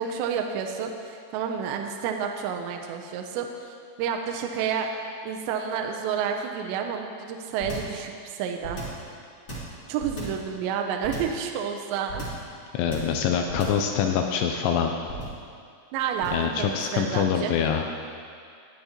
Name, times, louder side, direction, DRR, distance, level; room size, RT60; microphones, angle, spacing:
voice 1, 0.0-4.9 5.2-8.8 9.9-12.2 15.9-17.5, right 7 dB, 85° right, 3 dB, 2.6 m, -30 dB
Punches and hits, 7.6-8.0 8.6-9.0 9.5-10.5 11.0-11.4 12.1-12.5 12.9-13.2 13.5-13.9 15.0-15.4 16.2-16.5, right 1 dB, 25° left, 2.5 m, -36 dB
voice 2, 12.7-14.9 16.3-17.9, left 8 dB, 85° left, 4 dB, 2.7 m, -25 dB
20.5 x 6.9 x 2.9 m, 2.3 s
omnidirectional pair, 5.5 m